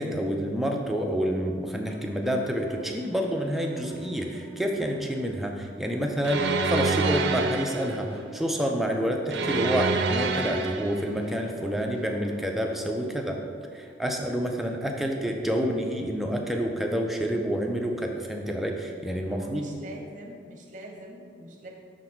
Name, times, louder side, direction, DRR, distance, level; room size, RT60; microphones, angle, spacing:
voice 1, 0.0-13.4 13.7-19.7, equal, ahead, 1 dB, 0.4 m, -28 dB
sound 1, 1.0-6.2 6.5-14.3, right 2 dB, 85° left, 1.1 m, -48 dB
sound 2, 6.2-8.0 9.3-11.0, right 3 dB, 70° right, 0.4 m, -26 dB
voice 2, 19.3-21.7, right 1 dB, 45° right, 1 dB, 0.9 m, -43 dB
5.9 x 4.1 x 4.4 m, 2.1 s
head